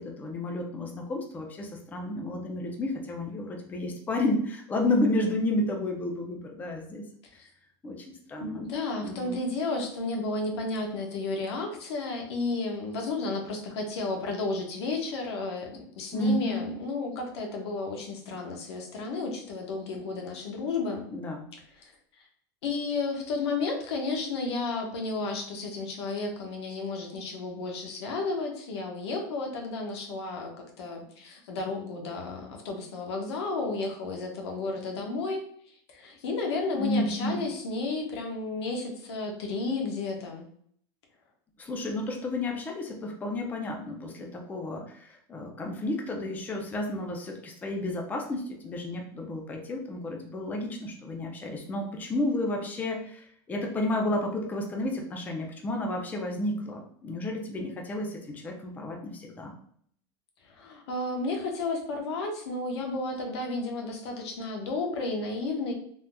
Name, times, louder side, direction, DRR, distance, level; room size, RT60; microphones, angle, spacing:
voice 1, 0.0-7.1 7.4-7.5 7.8-8.6 9.0-9.4 16.1-16.7 21.1-21.4 36.7-37.5 41.6-59.5, left 1 dB, 10° left, 1 dB, 0.4 m, -31 dB
voice 2, 8.4-21.0 21.5-21.9 22.6-35.4 35.9-40.5 60.5-65.7, left 3 dB, 80° left, 2 dB, 0.9 m, -32 dB
3.5 x 2.6 x 2.2 m, 0.62 s
supercardioid pair, 145°, 14 cm